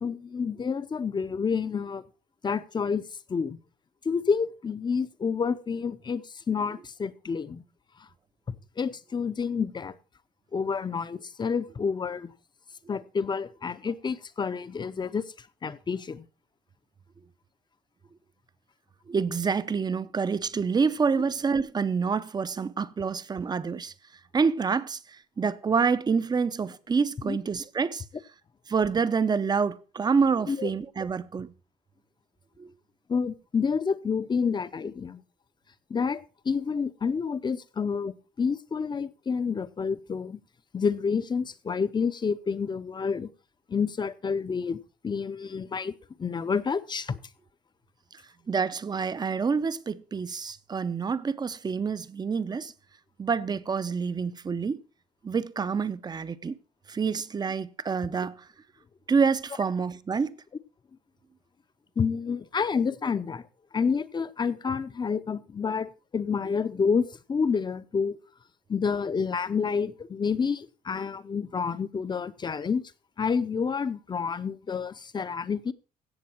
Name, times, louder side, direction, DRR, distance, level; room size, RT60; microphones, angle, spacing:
voice 1, 0.0-2.0 2.4-3.0 3.3-3.6 4.0-7.6 8.8-9.9 10.5-12.3 12.9-16.2 27.2-27.4 30.5-30.7 33.1-35.2 35.9-40.4 40.7-43.3 43.7-44.8 45.0-47.2 62.0-63.4 63.7-68.2 68.7-72.8 73.2-75.7, left 5 dB, 25° left, 0.7 m, -29 dB
voice 2, 19.1-23.9 24.3-28.0 28.7-31.5 32.6-32.7 48.5-52.7 53.2-54.8 55.2-56.6 56.9-58.5 59.1-60.4, right 5 dB, 25° right, 0.6 m, -27 dB
16.0 x 6.8 x 4.5 m
cardioid pair, 110°, 17 cm